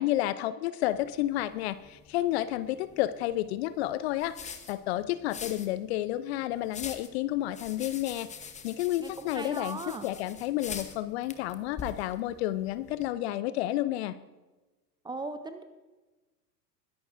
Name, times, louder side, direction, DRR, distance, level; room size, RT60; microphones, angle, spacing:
voice 1, 0.0-14.2, left 14 dB, 40° left, 15 dB, 0.5 m, -31 dB
sound 1, 0.9-13.1, left 6 dB, 15° left, 0.9 m, -46 dB
voice 2, 9.0-10.1 15.0-15.6, right 3 dB, 10° right, 9 dB, 0.5 m, -38 dB
21.5 x 10.5 x 2.6 m, 1.2 s
figure-of-eight pair, 90°, 50 cm